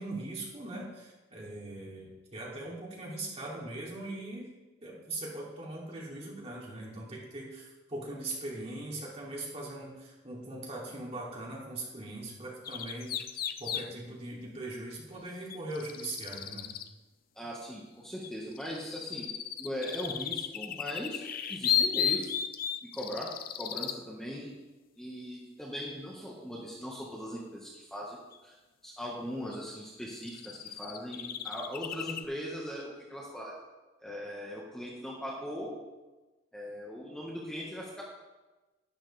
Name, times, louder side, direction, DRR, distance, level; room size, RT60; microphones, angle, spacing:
voice 1, 0.0-4.5 4.8-13.2 13.6-16.7, right 2 dB, 35° right, -4 dB, 2.9 m, -40 dB
sound 1, 12.6-13.9 15.5-16.9 18.2-24.0 28.3-28.4 29.5-29.6 30.0-32.2, left 9 dB, 50° left, 0.5 m, -34 dB
voice 2, 17.3-19.3 19.6-21.2 21.5-22.4 22.8-23.3 23.6-24.5 25.0-28.6 28.8-33.5 34.0-35.7 36.5-38.0, equal, 5° left, -5 dB, 1.6 m, -39 dB
12.0 x 10.5 x 3.5 m, 1.1 s
head